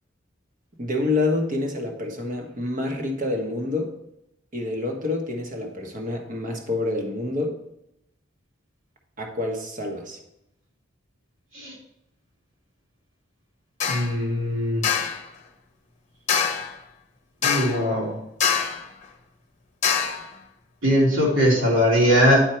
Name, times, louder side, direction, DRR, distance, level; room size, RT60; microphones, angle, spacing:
voice 1, 0.8-3.9 4.5-7.6 9.2-10.2, left 2 dB, 45° right, 2 dB, 1.3 m, -27 dB
sound 1, 13.8-14.1 14.8-15.2 16.3-16.7 17.4-17.9 18.4-18.9 19.8-20.3, left 7 dB, 40° left, 0.8 m, -24 dB
voice 2, 13.8-14.8 17.4-18.2 20.8-22.4, equal, 85° right, -4 dB, 3.0 m, -20 dB
9.0 x 4.5 x 4.5 m, 0.78 s
head